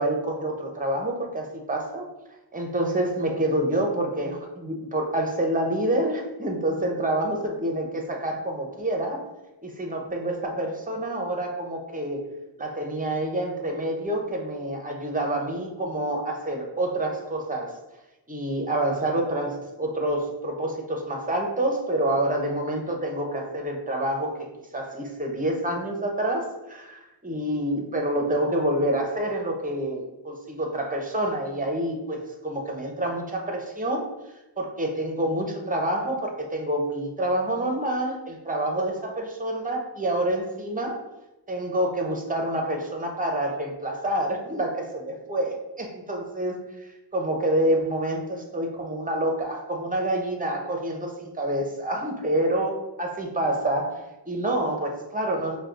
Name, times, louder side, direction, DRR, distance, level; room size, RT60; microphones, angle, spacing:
voice 1, 0.0-2.1 2.5-9.2 9.6-12.2 12.6-17.7 18.3-24.5 24.7-34.0 34.6-41.0 41.5-46.6 47.1-55.6, right 1 dB, 20° right, 2 dB, 0.7 m, -27 dB
5.6 x 2.2 x 2.5 m, 1.0 s
wide cardioid pair, 65°, 44 cm